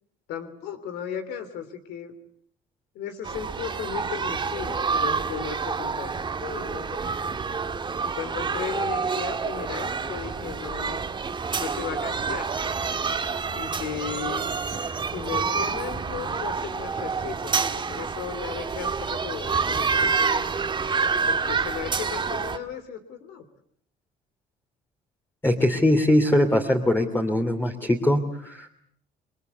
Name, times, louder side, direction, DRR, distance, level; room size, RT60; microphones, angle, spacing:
voice 1, 0.3-2.1 2.9-7.4 8.0-11.1 11.6-12.4 13.5-14.5 15.1-20.5 21.3-23.4, left 8 dB, 85° left, 9 dB, 3.2 m, -36 dB
sound 1, 3.2-22.6, right 5 dB, 25° right, 1.9 m, -28 dB
voice 2, 25.4-28.7, left 1 dB, 10° left, 2 dB, 3.0 m, -22 dB
29.0 x 22.0 x 8.2 m, 0.65 s
cardioid pair, 110°, 17 cm